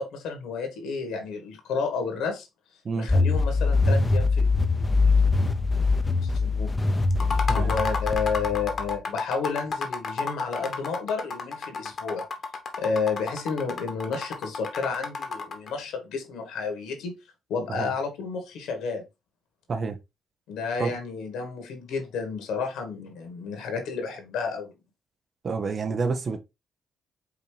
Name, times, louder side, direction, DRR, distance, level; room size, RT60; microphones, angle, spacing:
voice 1, 0.0-2.5 2.9-4.4 4.8-5.2 6.2-6.7 7.5-12.3 12.8-17.2 17.5-19.0 20.5-24.7, left 5 dB, 85° left, 1.4 m, -31 dB
sound 1, 3.1-9.0, left 3 dB, 20° left, 0.6 m, -23 dB
sound 2, 7.1-15.7, left 4 dB, 50° left, 1.0 m, -32 dB
voice 2, 25.4-26.4, right 4 dB, 45° right, 0.8 m, -28 dB
4.9 x 2.8 x 3.3 m
cardioid pair, 90°, 0 cm